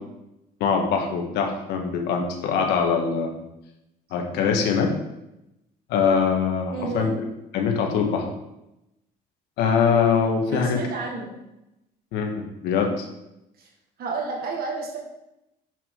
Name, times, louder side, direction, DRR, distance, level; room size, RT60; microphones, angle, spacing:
voice 1, 0.6-3.4 4.1-4.9 5.9-7.1 7.5-8.3 9.6-10.8 12.1-13.0, left 6 dB, 90° left, 3 dB, 1.3 m, -23 dB
voice 2, 6.7-7.1 10.5-11.4 13.6-13.7 14.0-15.0, right 4 dB, 65° right, -1 dB, 1.5 m, -31 dB
7.3 x 5.8 x 3.6 m, 0.90 s
cardioid pair, 110°, 17 cm